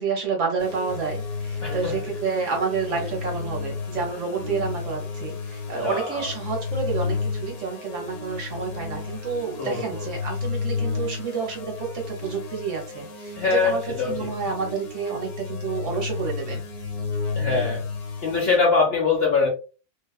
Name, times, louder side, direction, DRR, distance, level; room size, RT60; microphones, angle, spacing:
voice 1, 0.0-16.6, right 5 dB, 60° right, 1 dB, 1.0 m, -29 dB
sound 1, 0.6-18.6, left 4 dB, 75° left, 1.2 m, -32 dB
voice 2, 1.6-2.0 5.7-6.3 9.6-10.1 13.4-14.3 17.3-17.8 18.2-19.5, left 4 dB, 55° left, -2 dB, 0.7 m, -23 dB
2.8 x 2.2 x 2.2 m, 0.33 s
omnidirectional pair, 1.6 m